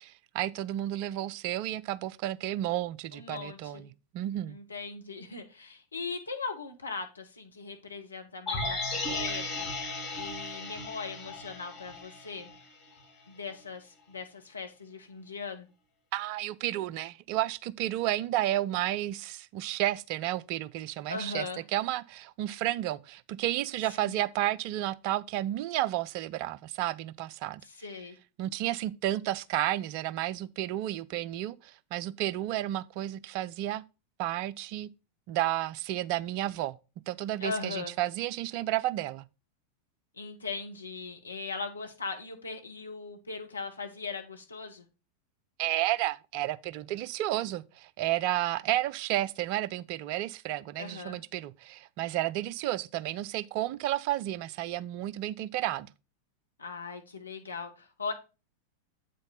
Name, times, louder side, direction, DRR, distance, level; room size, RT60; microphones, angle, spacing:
voice 1, 0.3-4.6 16.1-27.6 28.4-33.8 34.2-34.9 35.3-36.8 37.1-39.3 45.6-55.9, right 14 dB, 45° right, 0.4 m, -32 dB
voice 2, 3.1-3.9 4.5-12.5 13.3-15.7 21.1-21.6 24.0-24.1 27.6-28.1 37.4-37.9 40.2-44.8 50.8-51.2 56.6-58.1, left 4 dB, 75° left, 1.0 m, -39 dB
sound 1, 8.5-12.7 13.0-13.1, left 2 dB, 25° left, 2.8 m, -35 dB
8.1 x 5.2 x 3.8 m
figure-of-eight pair, 90°, 0 cm